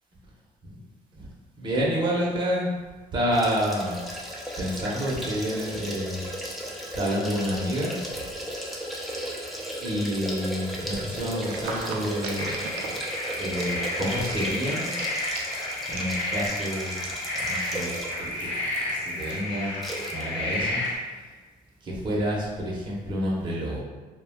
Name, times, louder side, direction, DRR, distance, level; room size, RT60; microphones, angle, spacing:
voice 1, 1.6-2.7 3.1-4.0 4.6-6.2 6.6-8.0 9.8-12.5 13.4-15.0 15.9-16.9 17.3-17.9 18.2-19.7 20.1-20.8 21.8-23.8, equal, 25° right, -5 dB, 0.7 m, -28 dB
sound 1, 3.3-18.3 18.7-18.8 19.8-20.2 20.5-20.6, equal, ahead, 0.4 m, -36 dB
sound 2, 11.4-19.4, right 4 dB, 75° right, 0.4 m, -40 dB
sound 3, 12.3-21.0, left 1 dB, 35° left, 0.8 m, -31 dB
2.2 x 2.2 x 3.3 m, 1.4 s
cardioid pair, 110°, 17 cm